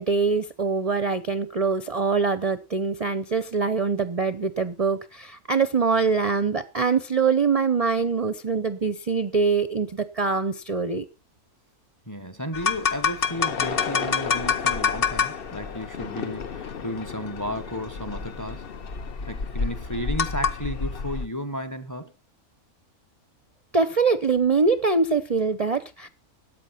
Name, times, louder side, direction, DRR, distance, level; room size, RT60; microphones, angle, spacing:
voice 1, 0.0-11.0 23.7-26.1, right 4 dB, 35° right, 0.6 m, -24 dB
voice 2, 12.1-18.7 19.3-22.1, equal, 15° left, 0.9 m, -33 dB
sound 1, 12.5-21.3, left 6 dB, 45° left, 0.9 m, -28 dB
13.5 x 8.7 x 5.7 m
omnidirectional pair, 1.6 m